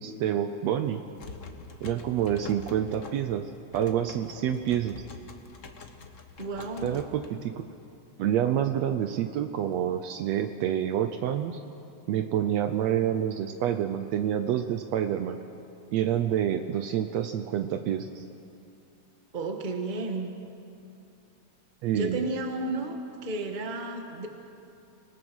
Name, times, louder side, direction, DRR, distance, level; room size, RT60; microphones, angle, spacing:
voice 1, 0.0-1.0 1.8-3.4 3.7-5.0 6.8-7.7 8.2-11.6 12.1-15.4 15.9-18.2 21.8-22.3, right 10 dB, 75° right, 8 dB, 1.8 m, -28 dB
sound 1, 0.9-7.7, left 4 dB, 60° left, 0.8 m, -45 dB
voice 2, 6.4-6.9 19.3-20.3 21.9-24.3, right 2 dB, 25° right, 4 dB, 1.2 m, -32 dB
28.5 x 19.0 x 6.3 m, 2.6 s
omnidirectional pair, 3.4 m